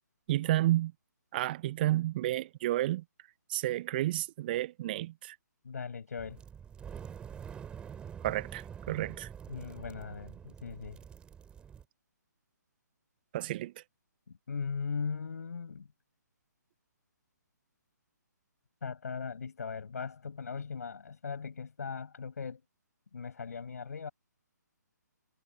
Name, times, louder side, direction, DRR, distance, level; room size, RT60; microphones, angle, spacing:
voice 1, 0.3-0.9 1.3-3.0 3.5-5.3 8.2-9.3 13.3-13.7, right 15 dB, 30° right, 1.3 m, -31 dB
voice 2, 5.6-6.4 9.5-11.0 14.3-15.9 18.8-22.6 23.1-24.1, left 5 dB, 55° left, 6.9 m, -39 dB
sound 1, 6.2-11.8, right 8 dB, 10° right, 3.7 m, -46 dB
figure-of-eight pair, 135°, 10 cm